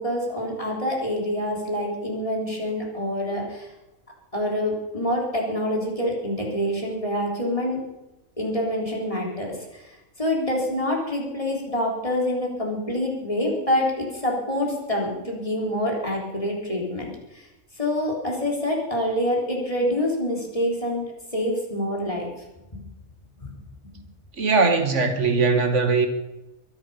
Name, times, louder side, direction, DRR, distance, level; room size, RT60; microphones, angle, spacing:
voice 1, 0.0-3.7 4.3-7.8 8.4-9.9 10.2-17.5 17.8-21.0 21.3-22.3 23.4-23.5, left 1 dB, 25° left, 3.7 m, -26 dB
voice 2, 24.4-26.1, right 4 dB, 65° right, 1.6 m, -20 dB
22.5 x 10.5 x 5.6 m
omnidirectional pair, 1.3 m